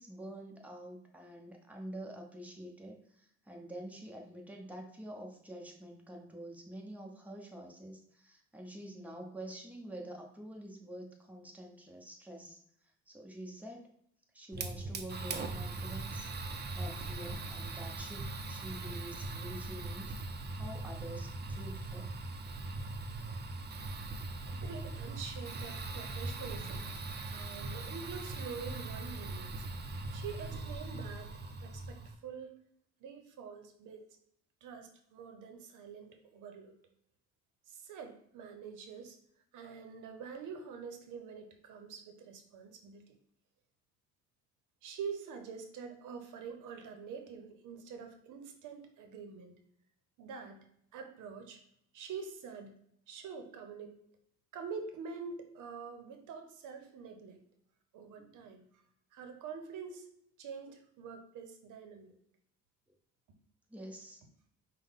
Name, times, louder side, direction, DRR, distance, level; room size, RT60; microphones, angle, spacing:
voice 1, 0.0-12.6 13.1-13.9 14.3-22.1 58.2-58.4 63.7-64.2, right 1 dB, 5° right, 0 dB, 0.9 m, -47 dB
Fire, 14.5-32.1, right 2 dB, 35° right, 0.6 m, -40 dB
voice 2, 24.4-29.6 30.1-31.3 31.6-32.5 33.0-34.0 34.6-36.8 37.7-39.2 39.5-43.2 44.8-49.6 50.2-50.6 50.9-51.6 51.9-52.8 53.1-53.9 54.5-57.4 57.9-58.8 59.1-60.1 60.4-62.1, right 6 dB, 80° right, 5 dB, 0.7 m, -46 dB
5.4 x 2.2 x 3.6 m, 0.69 s
cardioid pair, 90°, 30 cm